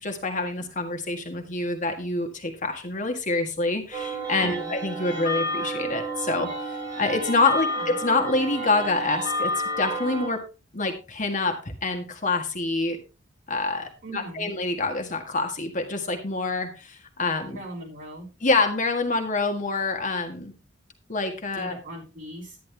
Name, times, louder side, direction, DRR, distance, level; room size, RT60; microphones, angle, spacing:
voice 1, 0.0-10.4 10.7-13.0 13.5-17.6 18.4-20.5 21.1-21.7, left 3 dB, 40° left, 4 dB, 1.7 m, -26 dB
sound 1, 3.9-10.3, equal, 20° right, 5.8 m, -30 dB
voice 2, 4.4-4.8 7.7-8.0 14.0-14.5 17.5-18.3 21.5-22.6, right 1 dB, 45° right, -1 dB, 5.3 m, -39 dB
11.0 x 10.5 x 3.4 m, 0.30 s
head